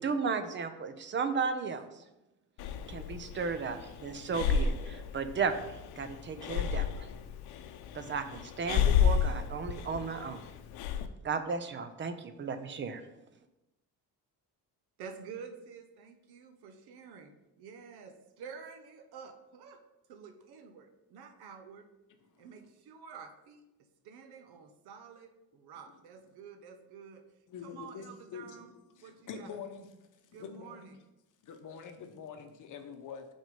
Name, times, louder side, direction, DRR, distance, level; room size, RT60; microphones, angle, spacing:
voice 1, 0.0-1.8 2.9-5.5 6.0-7.1 7.9-10.4 11.2-13.0, right 5 dB, 30° right, 10 dB, 0.5 m, -34 dB
Breathing, 2.6-11.1, left 7 dB, 85° left, 0.7 m, -32 dB
voice 2, 15.0-19.8 20.1-21.8 22.4-23.6 24.0-27.2 27.6-29.5 30.3-30.9, right 6 dB, 85° right, 8 dB, 1.0 m, -49 dB
voice 3, 22.2-22.7 27.5-28.6 29.0-29.9 30.2-30.9 31.4-33.3, left 6 dB, 50° left, 6 dB, 0.9 m, -45 dB
6.1 x 4.3 x 5.2 m, 0.94 s
cardioid pair, 145°, 38 cm